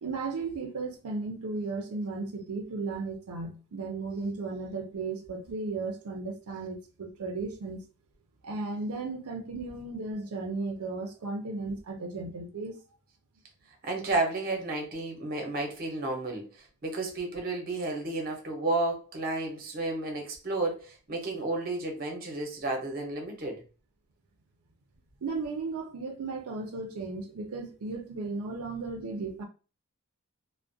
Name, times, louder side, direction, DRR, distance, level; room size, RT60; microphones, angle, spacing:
voice 1, 0.0-7.8 8.4-12.8 25.2-29.4, right 3 dB, 90° right, 0.5 m, -35 dB
voice 2, 13.8-23.6, right 2 dB, 40° right, 0.7 m, -32 dB
2.3 x 2.1 x 2.6 m
head